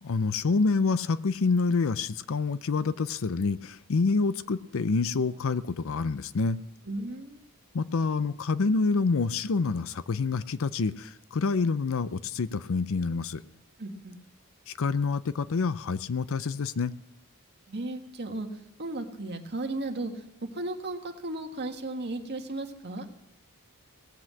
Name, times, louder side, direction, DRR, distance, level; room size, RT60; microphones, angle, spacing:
voice 1, 0.0-6.6 7.7-13.4 14.7-16.9, left 4 dB, 65° left, 15 dB, 0.5 m, -27 dB
voice 2, 6.9-7.4 13.8-14.2 17.7-18.5 18.8-20.1 20.5-23.0, right 2 dB, 50° right, 3 dB, 1.6 m, -35 dB
18.0 x 7.9 x 7.5 m, 0.87 s
head